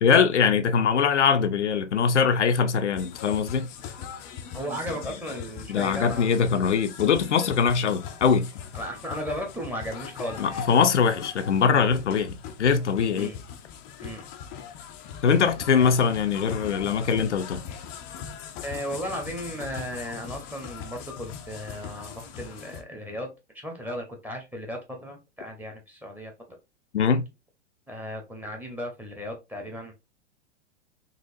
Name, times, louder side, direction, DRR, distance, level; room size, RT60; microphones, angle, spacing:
voice 1, 0.0-3.7 5.7-8.5 10.4-13.3 15.2-17.6 26.9-27.2, left 6 dB, 75° left, 0.5 m, -22 dB
sound 1, 3.0-22.8, left 7 dB, 25° left, 0.4 m, -40 dB
voice 2, 4.5-6.3 8.7-10.6 13.1-13.4 14.0-14.2 15.8-15.9 18.6-26.3 27.9-30.0, equal, 5° right, 0.9 m, -35 dB
4.0 x 3.0 x 2.6 m
figure-of-eight pair, 100°, 35 cm